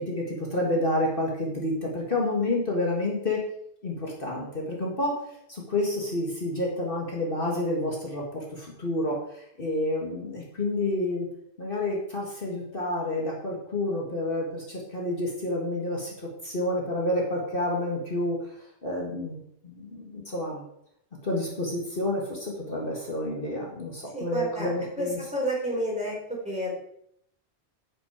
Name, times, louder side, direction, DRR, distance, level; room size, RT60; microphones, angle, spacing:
voice 1, 0.0-3.4 3.8-11.3 11.6-19.4 19.6-20.6 21.2-25.2, left 1 dB, 55° left, -2 dB, 2.0 m, -29 dB
voice 2, 24.1-24.7 25.0-26.2 26.4-26.7, equal, 5° right, -5 dB, 4.2 m, -30 dB
8.6 x 8.4 x 5.1 m, 0.73 s
omnidirectional pair, 1.1 m